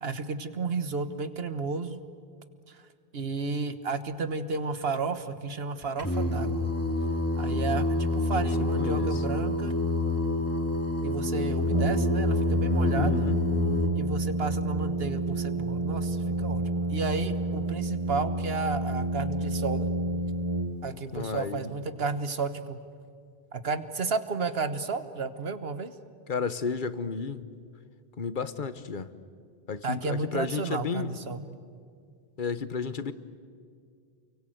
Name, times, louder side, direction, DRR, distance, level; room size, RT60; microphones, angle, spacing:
voice 1, 0.0-2.0 2.7-2.8 3.1-6.7 7.4-9.8 11.0-13.2 13.9-19.9 20.8-22.8 23.5-25.9 29.8-31.4, right 4 dB, 75° right, 1.5 m, -32 dB
Singing, 6.0-13.9, left 2 dB, 15° left, 2.7 m, -27 dB
voice 2, 8.7-9.2 13.0-13.4 21.1-21.7 26.3-27.4 28.2-29.1 29.7-31.1 32.4-33.1, left 5 dB, 55° left, 1.2 m, -32 dB
Brass instrument, 11.7-21.2, right 2 dB, 30° right, 1.1 m, -29 dB
29.5 x 23.5 x 7.9 m
omnidirectional pair, 1.0 m